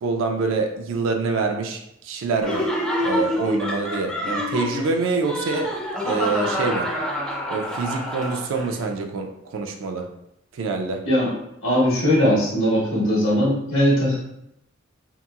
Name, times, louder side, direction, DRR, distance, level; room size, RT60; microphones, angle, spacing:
voice 1, 0.0-2.7 3.0-5.7 6.1-6.9 7.5-10.1 10.5-11.0, right 4 dB, 70° right, 4 dB, 0.3 m, -26 dB
Laughter, 2.4-8.8, left 1 dB, 5° left, 0.4 m, -27 dB
voice 2, 11.6-14.2, equal, 70° left, -5 dB, 1.1 m, -19 dB
2.8 x 2.8 x 2.3 m, 0.80 s
head